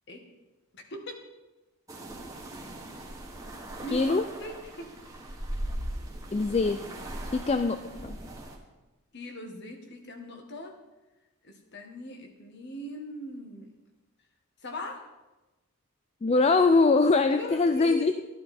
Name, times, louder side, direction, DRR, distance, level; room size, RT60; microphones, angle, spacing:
voice 1, 0.7-1.2 3.8-4.9 9.1-10.8 11.4-13.7 14.6-15.1 17.3-18.1, left 1 dB, 50° left, 3 dB, 1.6 m, -40 dB
sound 1, 1.9-8.6, right 1 dB, 15° right, 1.4 m, -39 dB
voice 2, 3.9-4.2 6.3-6.9 7.3-8.2 16.2-18.1, left 3 dB, 30° left, 9 dB, 0.3 m, -23 dB
13.0 x 11.0 x 4.3 m, 1.1 s
head